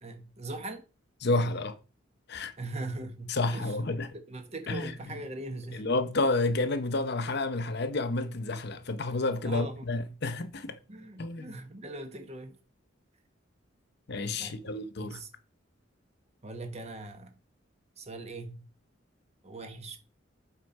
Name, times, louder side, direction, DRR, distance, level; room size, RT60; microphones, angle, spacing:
voice 1, 0.0-0.8 2.6-3.8 4.1-5.9 9.4-9.8 10.9-12.6 14.3-14.7 15.0-15.3 16.4-17.3 18.0-18.7 19.4-20.0, right 2 dB, 35° right, 1.2 m, -40 dB
voice 2, 1.2-1.8 2.3-2.5 3.3-4.1 4.7-4.9 5.7-10.7 11.2-11.6 14.1-15.2, left 2 dB, 55° left, 0.8 m, -30 dB
7.8 x 4.5 x 5.4 m
head